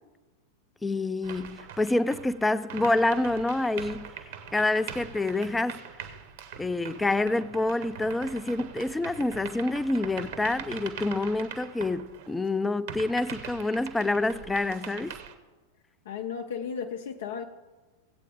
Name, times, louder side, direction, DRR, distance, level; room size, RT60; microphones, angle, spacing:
voice 1, 0.8-4.1 4.5-5.8 6.6-15.1, left 2 dB, 10° left, 0.4 m, -27 dB
sound 1, 1.2-12.5 12.9-15.3, right 8 dB, 55° right, 1.0 m, -42 dB
voice 2, 16.1-17.5, left 7 dB, 60° left, 0.5 m, -34 dB
17.5 x 8.2 x 3.6 m
figure-of-eight pair, 90°, 0 cm